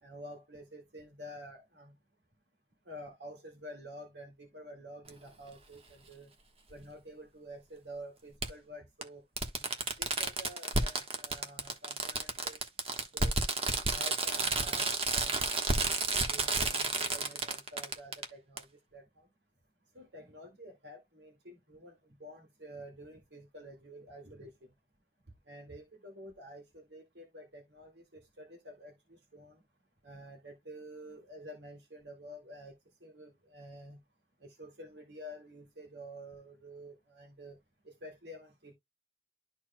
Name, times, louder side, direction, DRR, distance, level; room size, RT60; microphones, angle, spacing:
voice 1, 0.0-1.9 2.9-6.3 6.7-9.2 10.0-12.6 13.1-13.3 13.9-15.3 15.6-18.7 18.9-19.3 19.9-22.0 22.2-24.5 25.5-26.6 26.9-29.6 30.0-32.7 33.0-34.0 34.4-37.6 37.9-38.7, equal, 75° right, 2.0 m, -49 dB
Fireworks, 5.1-5.2 6.7-6.8 8.4-8.5 9.0-9.1 9.4-18.2 18.6-18.7, right 3 dB, 35° right, 1.2 m, -31 dB
12.5 x 4.6 x 2.2 m
head